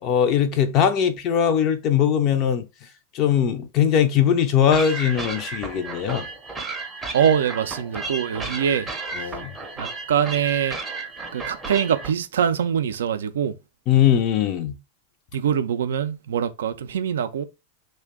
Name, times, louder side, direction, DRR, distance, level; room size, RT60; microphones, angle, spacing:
voice 1, 0.0-2.7 3.1-6.3 9.2-9.5 13.9-14.8, left 9 dB, 40° left, 0.4 m, -20 dB
sound 1, 4.7-12.1, right 3 dB, 10° right, 0.6 m, -33 dB
voice 2, 7.1-8.9 9.1-9.4 9.8-10.8 11.3-13.6 15.3-17.4, right 8 dB, 60° right, 0.3 m, -23 dB
2.5 x 2.1 x 3.5 m
figure-of-eight pair, 90°, 0 cm